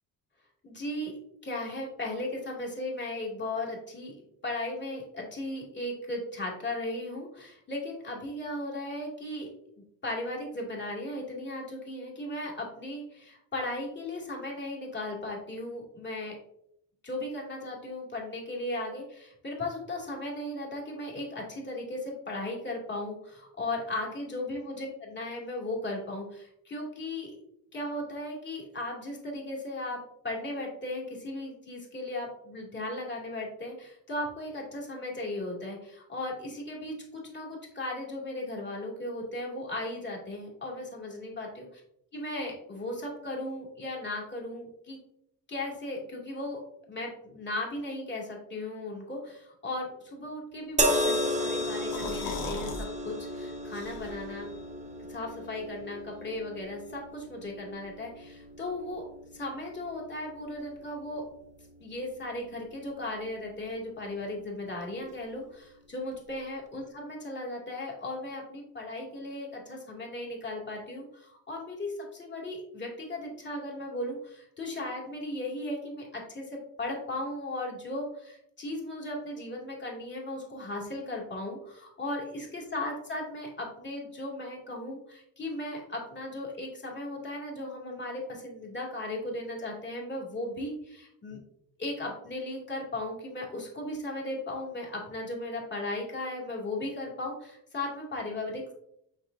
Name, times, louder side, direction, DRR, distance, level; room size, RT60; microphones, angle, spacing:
voice 1, 0.6-1.1 1.4-4.2 4.4-9.5 10.0-16.3 17.0-27.4 27.7-41.7 42.1-45.0 45.5-46.6 46.9-54.5 55.1-59.0 59.3-61.2 61.8-91.4 91.8-98.7, left 1 dB, 30° left, -2 dB, 2.3 m, -36 dB
sound 1, 50.8-64.1 65.1-65.2, equal, 20° right, 0.9 m, -35 dB
sound 2, 51.6-52.9 53.2-53.3 53.7-54.4, left 3 dB, 70° left, 1.4 m, -38 dB
6.4 x 5.7 x 2.6 m, 0.75 s
cardioid pair, 100°, 36 cm